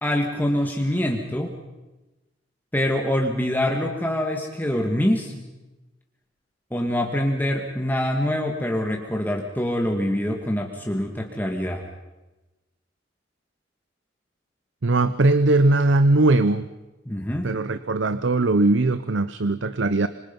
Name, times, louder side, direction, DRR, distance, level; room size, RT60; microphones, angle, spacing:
voice 1, 0.0-1.6 2.7-5.5 6.7-11.8 17.1-17.5, left 1 dB, 10° left, 1 dB, 1.9 m, -25 dB
voice 2, 14.8-16.6 17.4-20.1, right 2 dB, 75° right, 13 dB, 0.8 m, -20 dB
26.5 x 25.5 x 5.4 m, 1.1 s
head